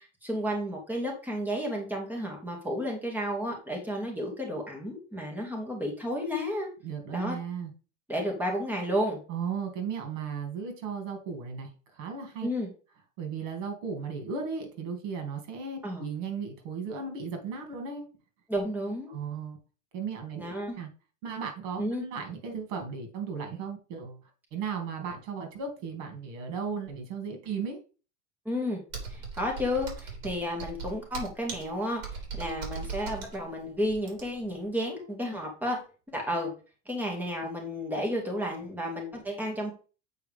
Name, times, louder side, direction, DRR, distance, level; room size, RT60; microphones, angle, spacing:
voice 1, 0.0-6.7 7.1-7.4 8.1-9.2 12.4-12.7 15.8-16.1 18.5-19.2 20.4-20.8 21.8-22.1 28.5-28.8 29.1-35.8 36.1-36.5 36.9-39.7, equal, 5° right, 0 dB, 2.1 m, -32 dB
voice 2, 6.8-7.7 9.3-12.5 13.2-18.1 19.1-19.6 19.9-20.9 21.2-24.2 24.5-27.8, right 6 dB, 75° right, 4 dB, 2.6 m, -36 dB
Computer keyboard, 28.9-34.5, right 5 dB, 60° right, 3.1 m, -39 dB
8.3 x 4.6 x 3.5 m, 0.35 s
supercardioid pair, 130°, 37 cm